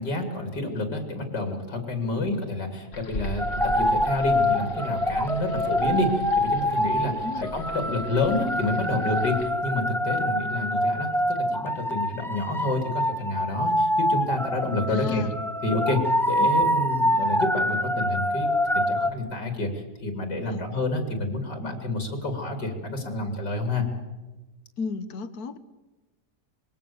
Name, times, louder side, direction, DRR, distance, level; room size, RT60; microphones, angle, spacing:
voice 1, 0.0-15.2 15.6-16.0 16.3-19.7 20.0-23.9, left 2 dB, 85° left, 4 dB, 3.6 m, -29 dB
sound 1, 2.9-9.5, left 1 dB, 45° left, 2.2 m, -39 dB
sound 2, 3.4-19.1, equal, 5° left, 0.4 m, -25 dB
voice 2, 14.9-15.3 20.5-20.7 24.8-25.6, left 4 dB, 65° left, 12 dB, 1.7 m, -33 dB
26.0 x 21.5 x 7.1 m, 1.1 s
omnidirectional pair, 1.8 m